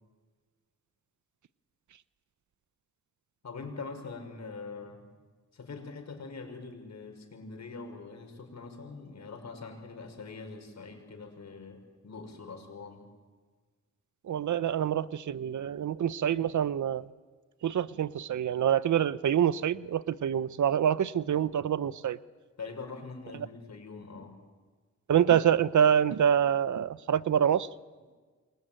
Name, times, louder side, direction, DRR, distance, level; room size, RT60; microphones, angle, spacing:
voice 1, 3.4-5.1 5.5-13.1 22.6-24.4, left 4 dB, 60° left, 5 dB, 6.0 m, -43 dB
voice 2, 14.3-17.0 17.6-22.2 25.1-27.7, right 9 dB, 70° right, 17 dB, 0.8 m, -26 dB
28.0 x 23.0 x 9.1 m, 1.5 s
cardioid pair, 85°, 30 cm